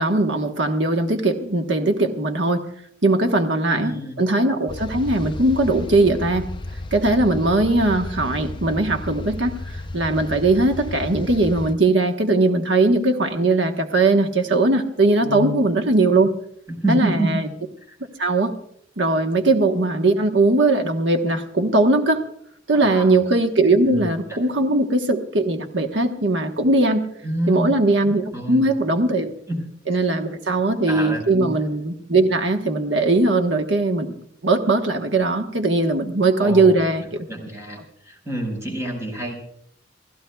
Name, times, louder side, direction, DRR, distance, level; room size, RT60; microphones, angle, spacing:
voice 1, 0.0-2.6 3.0-6.5 6.9-16.3 16.9-17.5 18.2-18.5 19.0-22.2 22.7-27.0 27.5-29.3 29.9-34.2 34.4-37.3, right 2 dB, 70° right, 4 dB, 1.2 m, -19 dB
voice 2, 3.7-4.1 15.2-15.6 16.8-17.4 17.9-18.0 22.7-23.1 23.9-24.1 27.2-27.7 28.3-28.6 29.5-29.6 29.9-30.0 30.9-31.5 36.4-36.8 37.3-37.8 38.0-39.3, right 1 dB, 15° right, 0 dB, 5.0 m, -27 dB
sound 1, 4.7-11.7, left 2 dB, 25° left, 0.6 m, -33 dB
29.5 x 15.5 x 2.3 m, 0.70 s
head